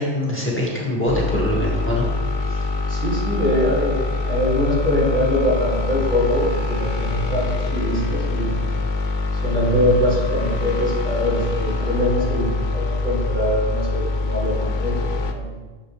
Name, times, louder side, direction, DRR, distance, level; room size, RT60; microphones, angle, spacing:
voice 1, 0.0-2.1 2.4-2.6, left 1 dB, 10° left, -5 dB, 1.9 m, -23 dB
sound 1, 1.1-15.3, left 3 dB, 75° left, 1.1 m, -24 dB
voice 2, 2.9-4.0 4.2-8.5 9.3-15.4, left 1 dB, 70° right, -7 dB, 3.4 m, -23 dB
12.0 x 7.4 x 3.4 m, 1.3 s
omnidirectional pair, 1.2 m